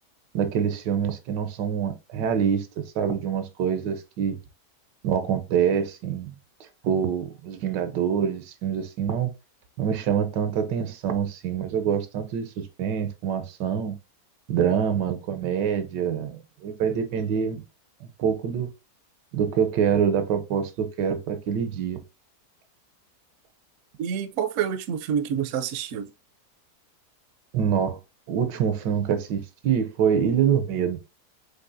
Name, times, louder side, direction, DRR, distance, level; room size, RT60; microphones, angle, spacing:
voice 1, 0.3-4.4 5.0-6.3 6.8-9.3 9.8-13.9 14.5-17.6 18.0-18.7 19.3-22.0 27.5-28.0 28.3-31.0, right 8 dB, 90° right, 1.4 m, -25 dB
voice 2, 24.0-26.1, right 8 dB, 70° right, 0.7 m, -28 dB
6.4 x 2.7 x 2.6 m
omnidirectional pair, 1.8 m